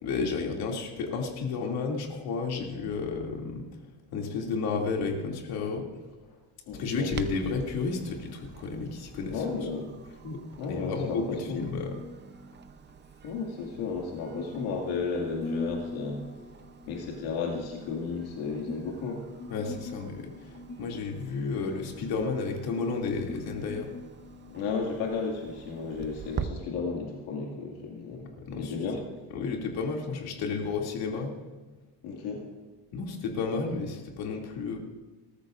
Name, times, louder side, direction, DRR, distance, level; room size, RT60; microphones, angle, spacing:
voice 1, 0.0-3.7 4.1-5.8 6.7-9.4 10.2-10.4 10.7-12.0 19.5-23.9 28.4-28.7 29.3-31.4 32.9-34.8, left 4 dB, 70° left, 0 dB, 2.7 m, -32 dB
voice 2, 6.7-7.1 9.3-9.9 10.6-11.7 13.2-16.2 16.9-19.4 24.5-28.3 28.5-29.0 32.0-32.5, left 4 dB, 90° left, -1 dB, 2.3 m, -33 dB
Clock, 7.1-26.5, right 7 dB, 30° right, 0.7 m, -46 dB
sound 1, 9.8-25.8, left 2 dB, 25° left, 3.2 m, -44 dB
19.5 x 13.0 x 2.6 m, 1.3 s
cardioid pair, 110°, 38 cm